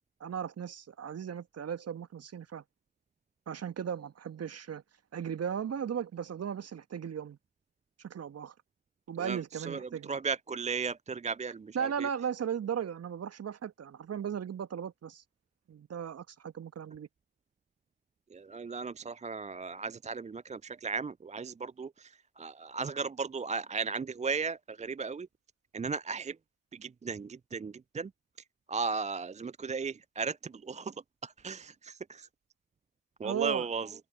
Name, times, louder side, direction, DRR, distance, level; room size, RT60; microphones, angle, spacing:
voice 1, 0.2-2.6 3.5-4.8 5.1-7.4 8.0-8.5 9.1-10.2 11.7-15.2 15.7-17.1 33.2-33.7, right 8 dB, 40° right, 1.8 m, -36 dB
voice 2, 10.1-11.8 18.3-22.1 22.4-25.3 25.7-26.3 26.8-28.1 28.7-30.9 31.2-32.3 33.2-33.9, right 5 dB, 15° right, 0.7 m, -35 dB
figure-of-eight pair, 45°, 40 cm